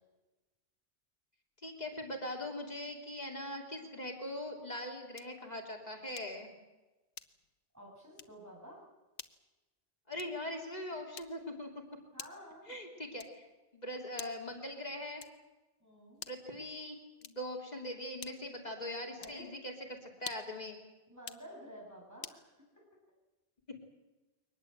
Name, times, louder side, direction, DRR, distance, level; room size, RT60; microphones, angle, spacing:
voice 1, 1.6-6.5 10.1-11.7 12.7-13.5 13.7-15.2 16.3-20.8, left 1 dB, 40° left, 1 dB, 3.2 m, -41 dB
sound 1, 5.1-5.5 6.2-6.5 7.1-7.6 8.1-8.4 9.1-9.4 10.1-10.5 11.1-11.6 12.2-12.5 13.2-13.5 14.1-14.6 15.2-15.5 16.1-16.5 17.2-17.6 18.2-18.6 19.2-19.5 20.2-20.6 21.2-21.5 22.2-22.5, left 7 dB, 75° left, 1.2 m, -49 dB
voice 2, 7.7-8.8 12.1-12.8 15.8-16.2 19.2-19.5 21.1-22.5 22.8-22.9, equal, 15° right, -2 dB, 7.6 m, -51 dB
22.5 x 19.5 x 8.0 m, 1.1 s
omnidirectional pair, 1.1 m